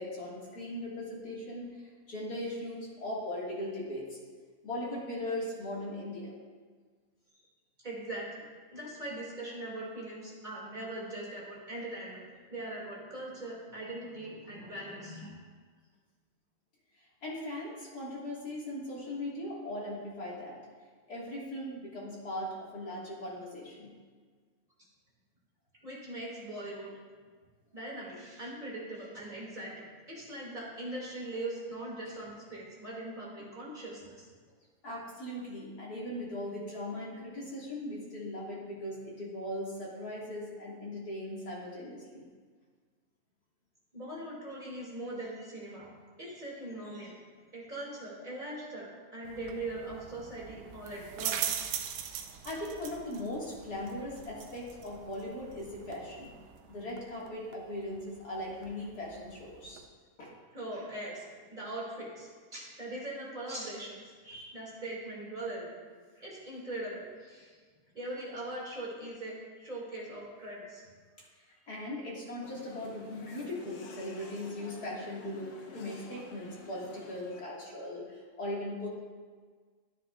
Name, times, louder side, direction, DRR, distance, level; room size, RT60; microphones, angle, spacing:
voice 1, 0.0-4.2 4.6-6.3 17.2-20.6 21.1-23.9 34.8-42.2 52.4-56.3 56.7-59.8 60.2-60.3 71.4-78.9, left 1 dB, 35° left, -5 dB, 1.6 m, -39 dB
voice 2, 7.8-8.3 8.7-12.2 12.5-15.3 25.8-26.9 27.7-34.1 43.9-45.9 46.2-47.2 47.5-51.5 60.5-65.7 66.1-67.6 67.9-70.8, right 1 dB, 15° right, -5 dB, 1.7 m, -41 dB
sound 1, 49.2-59.9, right 9 dB, 75° right, 2.1 m, -42 dB
sound 2, 72.4-77.4, left 3 dB, 75° left, 1.4 m, -50 dB
12.5 x 9.8 x 2.4 m, 1.5 s
omnidirectional pair, 4.0 m